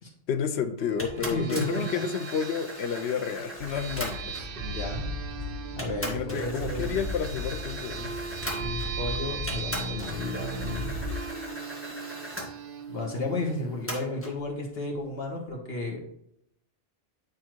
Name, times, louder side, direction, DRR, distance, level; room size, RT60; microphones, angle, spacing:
voice 1, 0.3-4.3 6.0-8.2, left 7 dB, 90° left, 9 dB, 0.9 m, -31 dB
sound 1, 0.8-14.0, right 6 dB, 60° right, 0.8 m, -39 dB
sound 2, 1.0-4.6 5.3-5.4 5.8-9.1 9.5-12.5 13.9-14.4, equal, 10° left, 1.7 m, -39 dB
voice 2, 1.3-2.0 4.5-5.1 5.8-6.9 8.5-10.9 12.9-16.1, left 2 dB, 70° left, 0 dB, 1.9 m, -33 dB
sound 3, 3.6-11.1, left 1 dB, 25° right, 2.1 m, -37 dB
9.6 x 3.5 x 4.6 m, 0.73 s
omnidirectional pair, 1.1 m